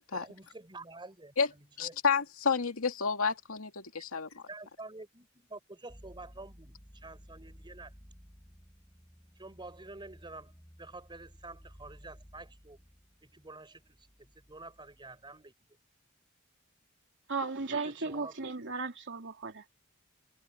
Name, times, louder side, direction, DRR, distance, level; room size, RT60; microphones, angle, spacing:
voice 1, 0.1-2.0 4.5-7.9 9.4-12.8 13.2-14.1 14.3-15.5 17.8-18.3, right 2 dB, 25° right, 4.5 m, -48 dB
voice 2, 1.8-4.4, left 5 dB, 90° left, 2.4 m, -30 dB
sound 1, 5.9-15.5, equal, 10° left, 7.0 m, -56 dB
voice 3, 17.3-19.6, right 4 dB, 60° right, 3.0 m, -36 dB
head